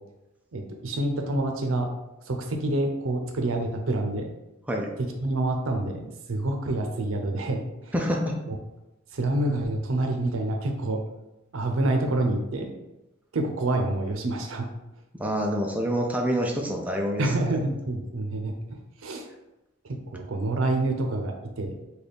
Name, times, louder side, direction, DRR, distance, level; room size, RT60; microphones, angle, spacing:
voice 1, 0.5-1.9 2.3-4.3 5.2-7.9 8.5-8.6 9.1-11.0 11.5-12.7 13.3-14.7 17.2-18.5 19.0-19.3 19.8-21.7, right 2 dB, 80° right, 4 dB, 0.6 m, -27 dB
voice 2, 7.9-8.4 15.1-17.3, equal, 5° right, 1 dB, 0.3 m, -27 dB
3.3 x 2.3 x 4.0 m, 0.96 s
head